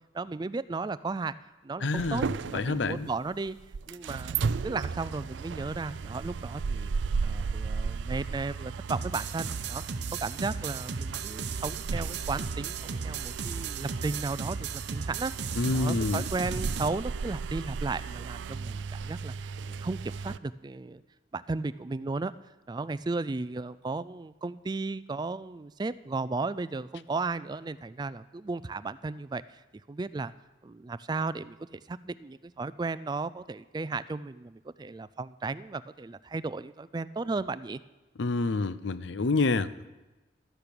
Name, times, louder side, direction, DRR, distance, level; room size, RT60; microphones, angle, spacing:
voice 1, 0.1-1.3 1.6-2.2 2.5-3.6 3.9-6.9 7.2-9.8 10.2-19.5 19.8-21.0 21.3-22.3 22.7-29.6 29.9-30.3 30.6-37.8, right 3 dB, 25° right, 16 dB, 0.3 m, -35 dB
voice 2, 1.8-2.2 2.5-3.1 15.6-16.2 38.2-39.9, left 3 dB, 85° left, 15 dB, 0.6 m, -27 dB
sound 1, 2.0-20.4, right 5 dB, 90° right, 0.4 m, -35 dB
sound 2, 8.9-16.9, right 5 dB, 70° right, 0.8 m, -36 dB
12.5 x 10.5 x 6.9 m, 1.1 s
head